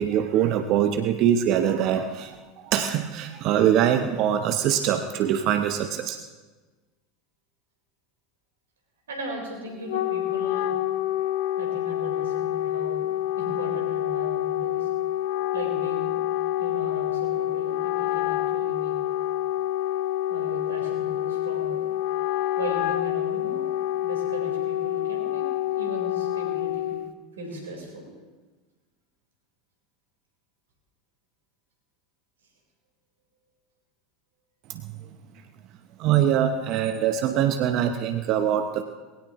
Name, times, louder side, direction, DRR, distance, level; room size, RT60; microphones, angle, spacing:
voice 1, 0.0-6.2 34.7-35.0 36.0-38.8, right 10 dB, 50° right, 8 dB, 0.8 m, -23 dB
voice 2, 9.1-10.7 11.6-13.1 13.4-14.9 15.5-16.1 16.6-19.0 20.3-21.9 22.6-23.7 24.0-25.5 25.7-26.9 27.3-28.1, right 1 dB, 80° right, 0 dB, 4.3 m, -38 dB
Wind instrument woodwind instrument, 9.7-27.1, left 13 dB, 65° left, 0.6 m, -27 dB
20.0 x 17.0 x 3.1 m, 1.3 s
hypercardioid pair, 80°, 0 cm